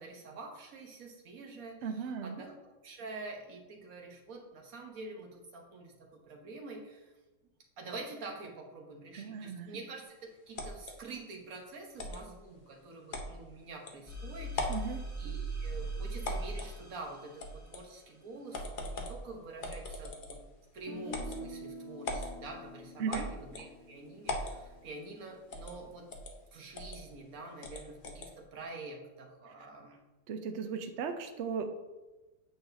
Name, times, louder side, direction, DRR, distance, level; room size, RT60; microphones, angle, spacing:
voice 1, 0.0-1.9 2.2-7.1 7.8-14.8 15.2-20.4 20.7-26.1 26.5-30.0, right 3 dB, 55° right, 1 dB, 1.4 m, -46 dB
voice 2, 1.8-2.4 9.1-9.7 14.7-15.0 23.0-23.3 30.3-31.7, right 6 dB, 80° right, 7 dB, 0.6 m, -36 dB
sound 1, 10.6-10.9 12.0-12.2 13.1-13.3 13.9-14.0 14.5-14.9 16.2-16.7 17.4-17.8 18.5-19.2 19.6-20.5 21.1-21.4 22.0-22.3 23.1-23.7 24.3-24.6 25.5-25.8 26.1-26.3 26.7-27.0 27.6-28.3, left 1 dB, 45° left, 0.6 m, -38 dB
sound 2, 14.1-17.6, right 2 dB, 10° left, 1.0 m, -39 dB
Guitar, 20.9-24.8, left 1 dB, 65° left, 1.3 m, -47 dB
8.8 x 6.2 x 2.6 m, 1.1 s
omnidirectional pair, 1.9 m